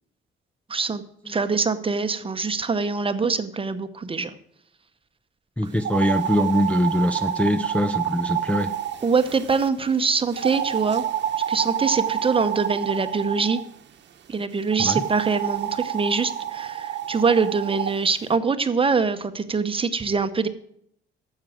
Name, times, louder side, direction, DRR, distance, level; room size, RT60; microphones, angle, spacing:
voice 1, 0.7-4.3 9.0-11.0 11.5-13.6 14.3-20.5, right 4 dB, 25° right, 10 dB, 0.9 m, -24 dB
voice 2, 5.6-8.7 14.8-15.0, left 1 dB, 5° left, 4 dB, 0.5 m, -23 dB
sound 1, 5.8-9.7 10.3-13.6 14.7-17.9, right 10 dB, 60° right, 1.0 m, -28 dB
9.8 x 7.5 x 7.5 m, 0.71 s
cardioid pair, 90°, 20 cm